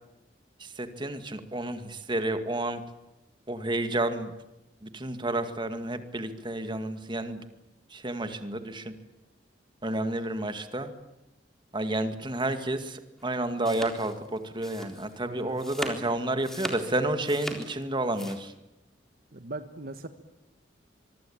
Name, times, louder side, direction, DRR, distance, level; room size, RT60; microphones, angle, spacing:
voice 1, 0.6-2.8 3.5-4.3 4.8-7.4 7.9-8.9 9.8-10.9 11.7-18.5, right 1 dB, 25° right, 9 dB, 2.1 m, -30 dB
sound 1, 13.2-18.4, equal, 5° left, 3.8 m, -39 dB
voice 2, 15.2-15.5 19.3-20.1, right 2 dB, 55° right, 9 dB, 1.4 m, -39 dB
25.0 x 24.0 x 8.8 m, 0.95 s
head